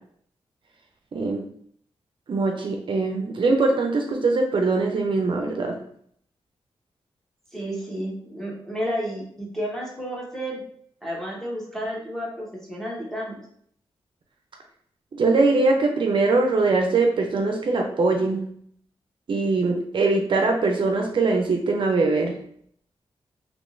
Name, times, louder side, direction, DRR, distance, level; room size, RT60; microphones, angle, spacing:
voice 1, 1.1-1.4 2.3-5.8 15.1-18.5 19.3-22.4, right 3 dB, 55° right, 2 dB, 0.5 m, -22 dB
voice 2, 7.5-10.6 11.0-13.4, equal, 5° left, -4 dB, 1.1 m, -31 dB
3.6 x 2.9 x 2.5 m, 0.64 s
wide cardioid pair, 105°, 10 cm